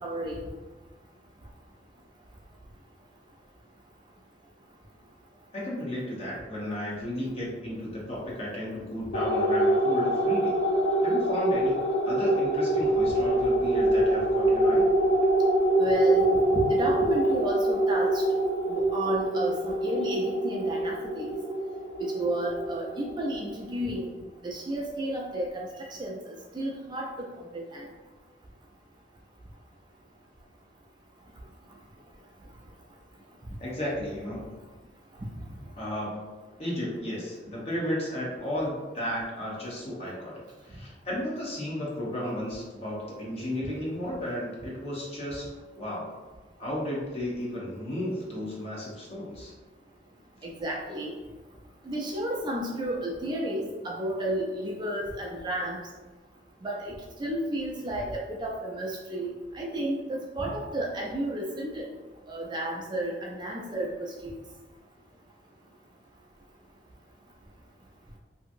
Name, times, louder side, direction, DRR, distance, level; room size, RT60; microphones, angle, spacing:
voice 1, 0.0-0.4 15.8-18.2 18.7-21.4 22.0-24.1 24.4-25.7 26.0-27.3 27.5-27.8 50.4-51.1 51.9-55.8 56.6-56.9 57.2-61.9 62.3-64.3, right 1 dB, 25° right, -2 dB, 0.4 m, -32 dB
voice 2, 5.5-10.6 11.0-11.8 12.1-14.8 33.6-34.6 35.8-46.2 46.6-49.5, left 1 dB, 35° left, -5 dB, 0.8 m, -34 dB
sound 1, 9.1-23.9, right 1 dB, 75° left, 0.5 m, -25 dB
2.8 x 2.6 x 2.5 m, 1.2 s
head